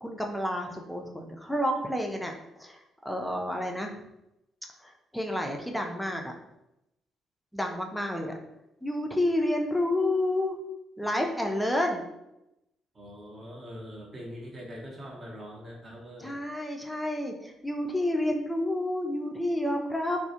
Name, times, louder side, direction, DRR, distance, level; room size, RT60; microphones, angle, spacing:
voice 1, 0.0-2.3 2.6-2.8 3.0-3.9 4.8-6.3 7.5-8.3 8.8-10.6 11.0-12.0 16.2-20.3, left 1 dB, 5° left, 1 dB, 0.4 m, -29 dB
voice 2, 12.9-16.3, equal, 35° right, -2 dB, 0.8 m, -43 dB
2.4 x 2.1 x 2.7 m, 0.89 s
hypercardioid pair, 45°, 0 cm